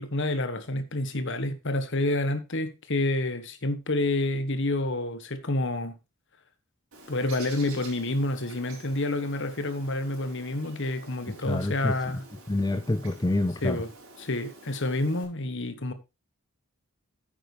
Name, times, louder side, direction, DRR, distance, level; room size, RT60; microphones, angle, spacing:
voice 1, 0.0-6.0 7.1-12.2 13.6-13.9 14.2-15.9, left 2 dB, 55° left, 1.3 m, -28 dB
Bird, 6.9-15.2, right 2 dB, 70° right, 4.8 m, -49 dB
voice 2, 11.3-12.0 12.5-13.8, left 2 dB, 15° left, 0.5 m, -27 dB
9.6 x 8.9 x 3.4 m
head